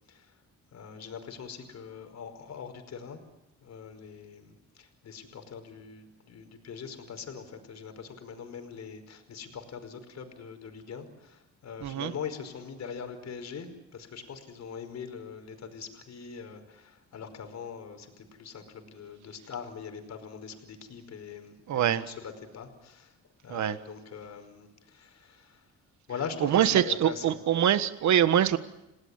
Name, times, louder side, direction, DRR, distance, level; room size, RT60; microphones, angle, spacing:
voice 1, 0.7-3.2 3.6-23.1 23.4-25.6 26.1-27.4, left 6 dB, 60° left, 7 dB, 5.2 m, -42 dB
voice 2, 11.8-12.1 21.7-22.0 23.5-23.8 26.4-28.6, right 10 dB, 70° right, 12 dB, 1.5 m, -24 dB
30.0 x 19.0 x 9.9 m, 0.93 s
cardioid pair, 90°, 30 cm